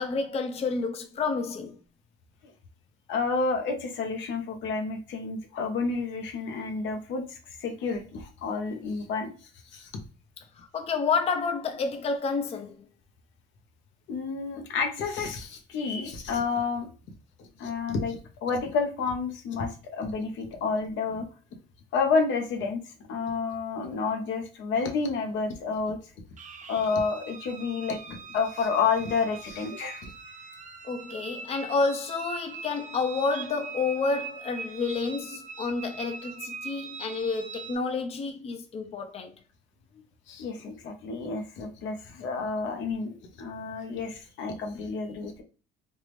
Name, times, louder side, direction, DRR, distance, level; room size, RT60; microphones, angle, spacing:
voice 1, 0.0-1.8 10.6-12.8 30.8-39.3, left 4 dB, 30° left, 0.5 m, -29 dB
voice 2, 3.1-9.3 9.7-9.9 14.1-16.9 17.4-21.2 21.9-22.8 23.1-26.0 26.7-30.1 30.5-30.8 40.3-45.4, left 4 dB, 75° left, 0.8 m, -30 dB
sound 1, 26.4-37.7, right 5 dB, 40° right, 0.5 m, -42 dB
3.4 x 2.0 x 3.1 m
cardioid pair, 80°, 19 cm